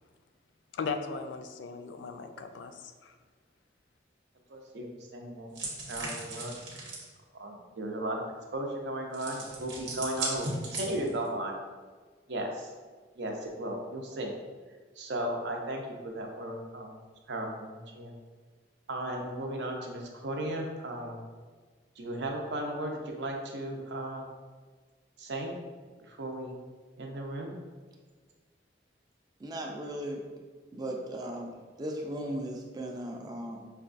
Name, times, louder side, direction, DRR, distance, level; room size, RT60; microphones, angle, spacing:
voice 1, 0.7-3.1, left 5 dB, 85° left, 7 dB, 0.3 m, -37 dB
voice 2, 4.5-5.5 5.9-6.5 7.3-8.2 8.5-11.6 12.3-12.7 13.2-14.3 15.0-17.0 17.3-18.1 18.9-21.2 22.0-24.2 25.2-25.5 26.1-26.5 27.0-27.5, right 1 dB, 70° right, 1 dB, 0.6 m, -35 dB
sound 1, 5.5-7.1 9.1-11.3, right 2 dB, 85° right, 1.0 m, -37 dB
voice 3, 29.4-30.2 30.7-33.7, right 1 dB, 20° right, 2 dB, 0.4 m, -37 dB
5.5 x 2.3 x 2.5 m, 1.5 s
head